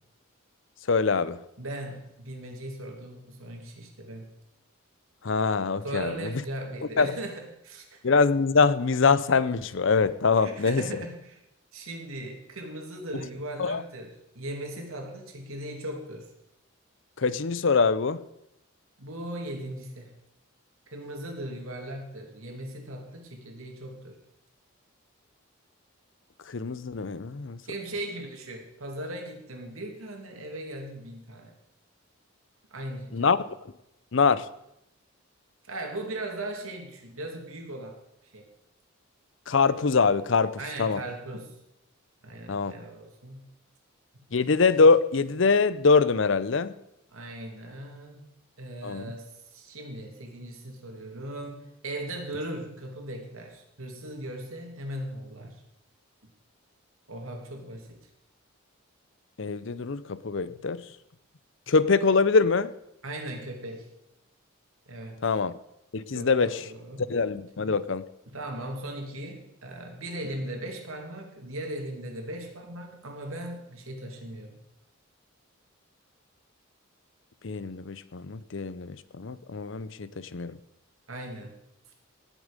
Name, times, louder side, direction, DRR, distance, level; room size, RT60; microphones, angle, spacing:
voice 1, 0.9-1.4 5.2-6.3 7.0-7.1 8.0-10.8 13.6-13.8 17.2-18.2 26.5-27.6 33.1-33.4 34.1-34.5 39.5-41.0 42.5-42.8 44.3-46.7 48.8-49.1 59.4-60.8 61.7-62.7 65.2-65.5 65.9-66.6 67.1-68.0 77.4-80.6, left 4 dB, 60° left, 16 dB, 0.6 m, -24 dB
voice 2, 1.6-4.3 5.8-8.0 10.3-11.4 11.7-16.3 19.0-20.1 20.9-24.2 27.6-31.5 32.7-33.3 35.7-38.0 38.3-38.5 40.6-41.5 42.2-43.5 47.1-48.3 48.6-55.6 57.1-58.1 63.0-63.9 64.9-65.3 66.1-67.1 68.3-74.6 81.1-81.6, right 1 dB, 90° right, 2 dB, 2.7 m, -38 dB
19.0 x 7.5 x 5.2 m, 0.84 s
head